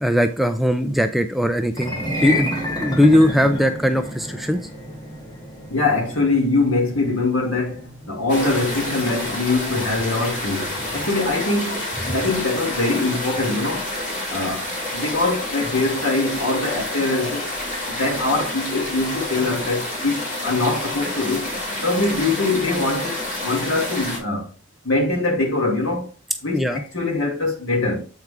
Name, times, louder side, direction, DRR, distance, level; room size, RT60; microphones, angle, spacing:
voice 1, 0.0-4.6 12.1-12.2 26.5-26.8, equal, ahead, 0.3 m, -19 dB
sound 1, 1.7-12.0, left 1 dB, 20° left, 1.3 m, -31 dB
voice 2, 5.7-13.8 14.3-14.7 14.9-17.4 17.9-21.5 21.8-24.5 24.8-26.1 26.4-28.0, left 2 dB, 75° left, 2.5 m, -23 dB
sound 2, 8.3-24.2, left 1 dB, 40° left, 2.7 m, -28 dB
7.8 x 4.6 x 3.6 m
head